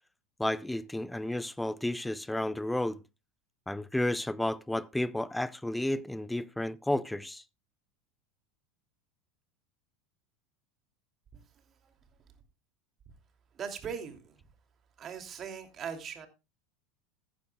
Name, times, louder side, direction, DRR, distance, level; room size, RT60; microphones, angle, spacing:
voice 1, 0.4-3.0 3.7-7.4, left 1 dB, 5° left, 0.6 m, -32 dB
voice 2, 13.6-14.3 15.0-16.3, right 7 dB, 35° right, 2.8 m, -39 dB
15.0 x 10.5 x 2.4 m
hypercardioid pair, 90°, 0 cm